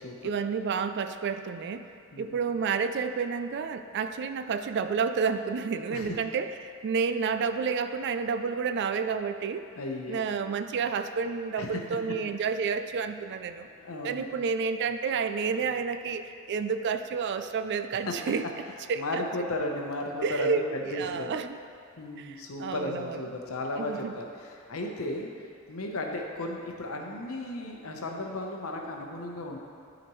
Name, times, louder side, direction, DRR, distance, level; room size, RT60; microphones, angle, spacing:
voice 1, 0.2-1.9 2.2-9.6 10.1-13.7 14.0-18.4 18.9-19.2 20.2-21.6 22.2-22.3 22.6-23.2 23.8-24.1, right 5 dB, 55° right, 9 dB, 0.3 m, -30 dB
voice 2, 9.8-10.2 11.6-11.8 13.6-14.2 18.1-18.2 18.9-21.4 22.0-25.3 25.7-29.6, left 1 dB, 75° left, 1 dB, 0.9 m, -34 dB
11.5 x 5.1 x 3.1 m, 2.4 s
head